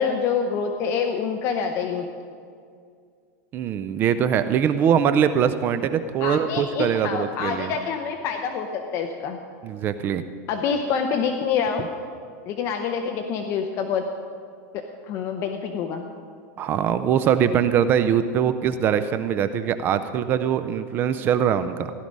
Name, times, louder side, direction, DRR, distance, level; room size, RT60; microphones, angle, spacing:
voice 1, 0.0-2.1 6.2-9.4 10.5-11.9 12.5-14.1 14.7-16.1, left 6 dB, 30° left, 5 dB, 0.8 m, -26 dB
voice 2, 3.5-7.7 9.6-10.2 16.6-21.9, right 8 dB, 25° right, 11 dB, 0.4 m, -22 dB
15.5 x 11.5 x 5.3 m, 2.2 s
supercardioid pair, 170°, 9 cm